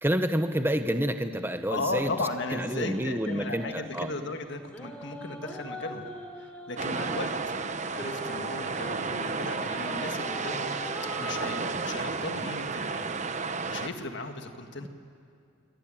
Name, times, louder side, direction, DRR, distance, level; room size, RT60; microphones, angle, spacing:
voice 1, 0.0-2.1 2.5-4.1, equal, 10° right, 8 dB, 1.0 m, -28 dB
voice 2, 1.7-6.1 6.4-7.3 7.9-10.8 11.2-14.9, left 2 dB, 55° left, 6 dB, 1.9 m, -36 dB
sound 1, 1.7-4.2 4.6-7.3 7.9-11.6, equal, 5° left, 3.6 m, -42 dB
sound 2, 6.8-13.9, right 4 dB, 35° right, 1.0 m, -32 dB
27.0 x 24.0 x 9.1 m, 2.4 s
head